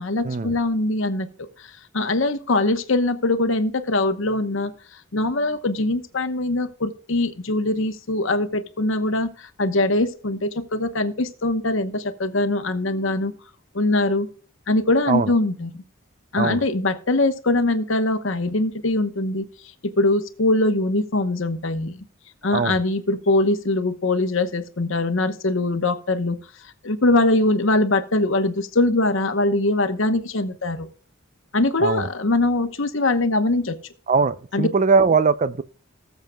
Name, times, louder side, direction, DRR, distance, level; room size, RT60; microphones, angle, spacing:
voice 1, 0.0-1.7 1.9-4.7 5.1-13.3 13.7-14.3 14.7-15.8 16.3-19.5 19.8-22.0 22.4-26.4 26.8-30.9 31.5-33.8 34.5-34.7, left 2 dB, 65° left, 1.0 m, -22 dB
voice 2, 34.1-35.6, right 4 dB, 35° right, 0.4 m, -20 dB
19.0 x 7.3 x 2.2 m
head